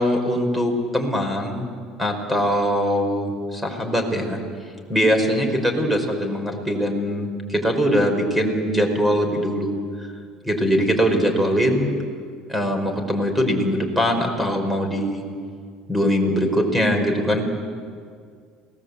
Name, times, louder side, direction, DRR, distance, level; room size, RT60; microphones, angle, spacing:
voice 1, 0.0-1.7 2.0-4.4 4.9-9.7 10.5-11.9 12.5-15.2 15.9-17.5, equal, 5° right, 5 dB, 5.4 m, -22 dB
29.0 x 19.5 x 8.5 m, 2.1 s
supercardioid pair, 105°, 0 cm